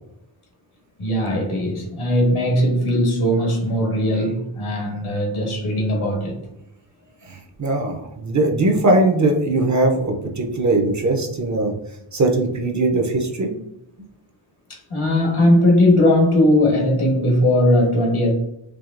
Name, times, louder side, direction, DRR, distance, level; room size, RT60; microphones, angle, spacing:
voice 1, 1.0-6.4 14.7-18.3, left 1 dB, 80° left, 0 dB, 1.4 m, -19 dB
voice 2, 7.3-11.7 12.1-13.5, right 2 dB, 35° right, 3 dB, 0.6 m, -20 dB
4.7 x 2.8 x 2.4 m, 0.80 s
wide cardioid pair, 150°, 49 cm